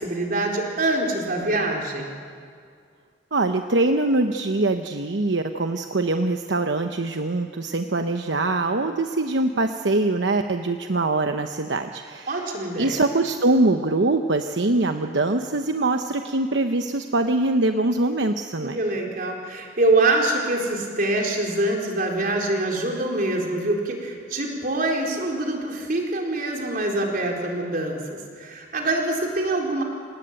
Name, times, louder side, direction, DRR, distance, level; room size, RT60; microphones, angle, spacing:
voice 1, 0.0-2.2 12.3-13.0 18.6-29.8, right 2 dB, 50° right, 0 dB, 4.2 m, -25 dB
voice 2, 3.3-12.5 12.8-18.8, right 2 dB, 75° right, 6 dB, 1.0 m, -23 dB
27.5 x 18.5 x 9.0 m, 2.1 s
head